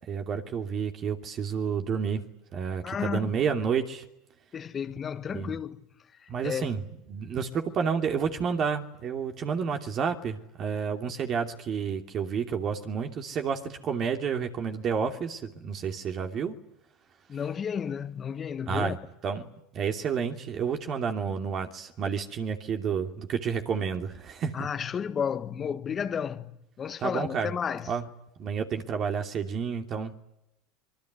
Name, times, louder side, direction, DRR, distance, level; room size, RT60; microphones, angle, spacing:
voice 1, 0.1-2.2 2.5-4.0 5.3-5.6 6.3-6.8 7.1-16.6 18.7-19.0 19.2-19.5 19.7-24.6 27.0-27.5 27.9-28.0 28.4-30.1, right 6 dB, 40° right, 2.8 m, -30 dB
voice 2, 2.8-3.3 4.5-5.9 6.2-6.8 17.3-19.0 24.5-28.0, left 7 dB, 30° left, 1.4 m, -32 dB
25.5 x 21.5 x 9.5 m
hypercardioid pair, 100°, 0 cm